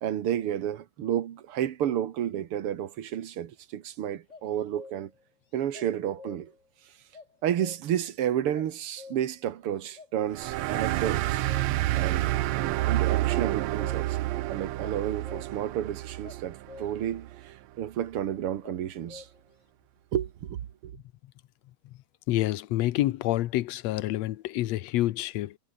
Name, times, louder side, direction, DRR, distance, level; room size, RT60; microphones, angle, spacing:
voice 1, 0.0-5.1 5.5-6.5 7.4-11.5 11.9-14.2 14.5-19.3 20.1-20.9, right 10 dB, 55° right, 1.9 m, -31 dB
sound 1, 4.3-5.2 5.7-6.7 7.1-8.1 8.5-9.5 10.0-10.1 11.0-12.1 13.4-14.3 14.8-15.7 16.2-17.2 18.6-19.6, left 4 dB, 25° left, 2.0 m, -49 dB
sound 2, 10.3-17.4, right 16 dB, 75° right, 1.9 m, -29 dB
voice 2, 22.3-25.6, left 15 dB, 70° left, 1.8 m, -28 dB
omnidirectional pair, 3.4 m